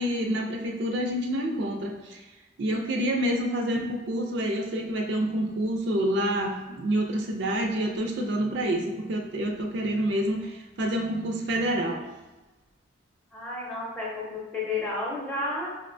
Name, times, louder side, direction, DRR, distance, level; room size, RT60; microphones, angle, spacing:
voice 1, 0.0-2.2 2.6-12.0, right 1 dB, 60° right, 1 dB, 0.4 m, -28 dB
voice 2, 13.3-15.7, left 2 dB, 5° left, -5 dB, 0.7 m, -31 dB
5.0 x 2.1 x 2.5 m, 1.1 s
head